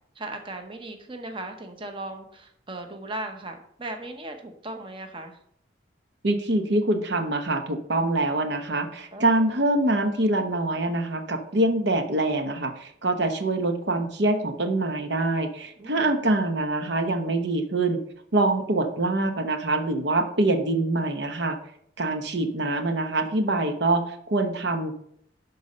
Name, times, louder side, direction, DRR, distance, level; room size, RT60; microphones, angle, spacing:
voice 1, 0.1-5.4 9.1-9.5 15.8-16.1, right 2 dB, 25° right, 5 dB, 0.9 m, -37 dB
voice 2, 6.2-18.0 18.3-21.6 22.0-24.9, right 2 dB, 65° right, 6 dB, 0.9 m, -25 dB
11.5 x 4.1 x 5.4 m, 0.69 s
head